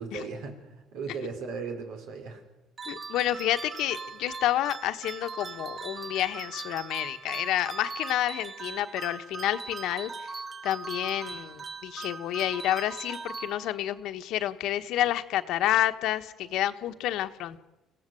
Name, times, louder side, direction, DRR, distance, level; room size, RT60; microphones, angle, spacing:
voice 1, 0.0-2.4, right 4 dB, 80° right, 4 dB, 4.8 m, -37 dB
sound 1, 2.8-14.0, right 4 dB, 25° right, 1.0 m, -40 dB
voice 2, 2.9-10.1 10.6-17.6, left 13 dB, 70° left, 9 dB, 1.3 m, -29 dB
30.0 x 16.5 x 7.8 m, 1.1 s
cardioid pair, 125°, 0 cm